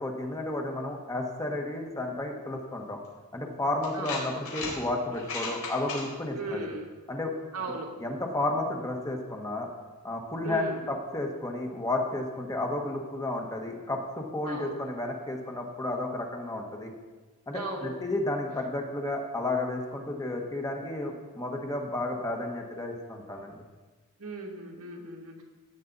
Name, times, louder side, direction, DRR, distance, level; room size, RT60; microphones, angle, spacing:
voice 1, 0.0-3.0 3.3-6.7 7.1-7.3 8.0-9.7 10.0-16.9 17.5-23.6, left 2 dB, 15° left, 2 dB, 1.4 m, -32 dB
sound 1, 3.0-3.1 3.8-4.7 5.1-6.0, left 4 dB, 75° left, 4.4 m, -36 dB
voice 2, 3.9-4.3 6.3-6.9 7.5-7.9 10.4-10.8 14.4-14.8 17.5-18.0 24.2-25.4, right 2 dB, 90° right, 0 dB, 2.3 m, -37 dB
16.0 x 9.4 x 4.1 m, 1.3 s
head